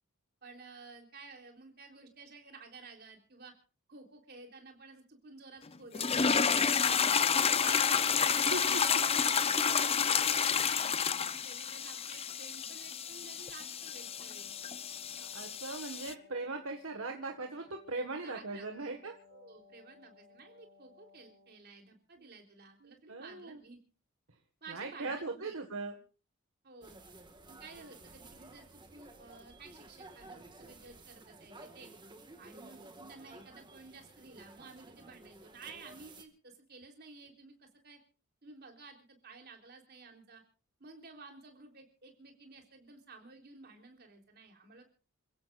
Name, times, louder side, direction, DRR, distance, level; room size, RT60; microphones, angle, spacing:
voice 1, 0.4-3.5 3.9-6.4 6.7-8.4 8.8-11.0 11.3-14.5 18.2-18.9 19.3-23.8 24.6-25.6 26.6-27.0 27.5-31.9 32.4-38.0 38.4-40.4 40.8-44.8, right 3 dB, 50° right, 3 dB, 3.7 m, -53 dB
sound 1, 5.9-16.1, left 6 dB, 30° left, 0.6 m, -30 dB
voice 2, 8.1-8.8 15.2-19.1 22.2-22.3 22.8-23.6 24.7-25.9, right 3 dB, 70° right, 3 dB, 1.8 m, -39 dB
Wind instrument woodwind instrument, 13.7-21.7, left 5 dB, 75° left, 6.3 m, -61 dB
sound 2, 26.8-36.2, right 2 dB, 20° right, 1.9 m, -54 dB
28.0 x 16.0 x 2.6 m, 0.38 s
head